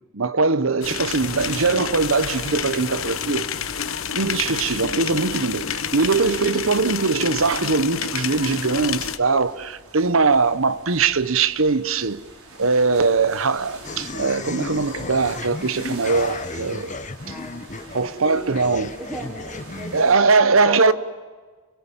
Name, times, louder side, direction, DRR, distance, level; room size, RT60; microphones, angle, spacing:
voice 1, 0.1-3.5 4.1-12.2 12.6-16.9 17.3-17.4 17.9-18.9 19.9-20.9, right 4 dB, 70° right, 1.0 m, -21 dB
sound 1, 0.8-9.2, left 7 dB, 70° left, 1.1 m, -29 dB
sound 2, 1.1-20.1, right 2 dB, 90° right, 5.4 m, -44 dB
sound 3, 13.8-20.0, left 3 dB, 35° left, 1.1 m, -34 dB
voice 2, 17.2-20.9, equal, 10° right, 4.7 m, -36 dB
29.5 x 22.5 x 7.3 m
head